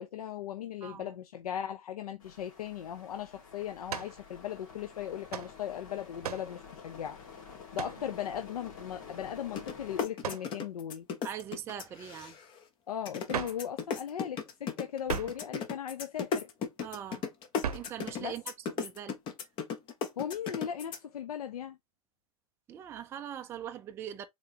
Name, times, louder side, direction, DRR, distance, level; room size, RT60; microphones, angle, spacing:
voice 1, 0.0-11.1 12.9-16.5 18.2-18.4 20.2-21.8, left 9 dB, 85° left, 0.6 m, -38 dB
sound 1, 2.2-10.1, left 6 dB, 65° left, 2.1 m, -50 dB
sound 2, 3.9-4.2 5.3-5.5 6.2-6.5 7.7-8.0 10.2-10.5 13.3-13.7 15.1-15.4 17.6-18.0, right 8 dB, 85° right, 0.6 m, -37 dB
sound 3, 9.6-9.7 10.0-12.6 13.1-21.0, left 6 dB, 25° left, 0.8 m, -34 dB
voice 2, 11.2-12.4 16.8-17.2 17.7-18.4 18.8-19.2 22.7-24.3, right 10 dB, 15° right, 0.3 m, -41 dB
3.8 x 3.7 x 2.7 m
hypercardioid pair, 135°, 19 cm